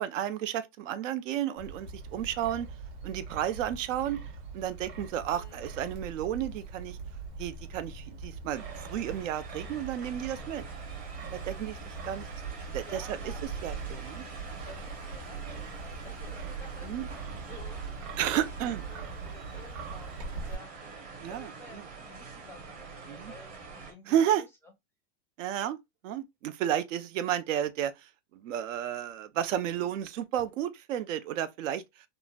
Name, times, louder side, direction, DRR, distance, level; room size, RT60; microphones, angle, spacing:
voice 1, 0.0-2.7 3.0-4.2 4.5-7.0 7.4-10.6 11.5-11.8 12.1-12.3 12.7-13.2 13.6-14.3 16.8-17.1 18.2-18.8 21.2-21.5 23.1-23.3 24.1-24.4 25.4-25.8 26.0-27.9 28.4-31.8, right 10 dB, 85° right, 0.6 m, -32 dB
Wind, 1.6-20.5, right 4 dB, 45° right, 1.1 m, -41 dB
voice 2, 5.3-5.6 12.8-13.4 14.6-17.8 18.3-18.5 18.7-20.7 21.3-24.7, left 2 dB, 5° left, 0.4 m, -52 dB
sound 1, 8.5-23.9, right 4 dB, 25° right, 0.7 m, -46 dB
3.7 x 2.0 x 2.3 m
supercardioid pair, 155°, 37 cm